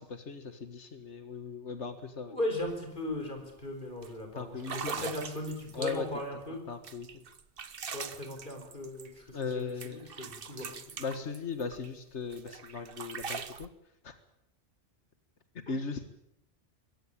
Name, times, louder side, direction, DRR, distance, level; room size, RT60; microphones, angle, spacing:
voice 1, 0.0-2.4 4.3-5.1 5.7-6.1 6.7-7.2 9.3-10.1 11.0-13.7 14.0-14.1 15.7-16.1, left 5 dB, 90° left, 9 dB, 1.9 m, -38 dB
voice 2, 2.3-6.6 7.9-11.0 15.7-15.8, left 1 dB, 45° left, 3 dB, 4.5 m, -38 dB
sound 1, 2.6-2.7 3.1-3.4 4.0-4.1 4.6-6.3 6.8-9.5 9.8-11.9 12.3-13.7, right 6 dB, 55° right, 1.3 m, -42 dB
23.0 x 17.0 x 8.8 m, 0.81 s
omnidirectional pair, 1.1 m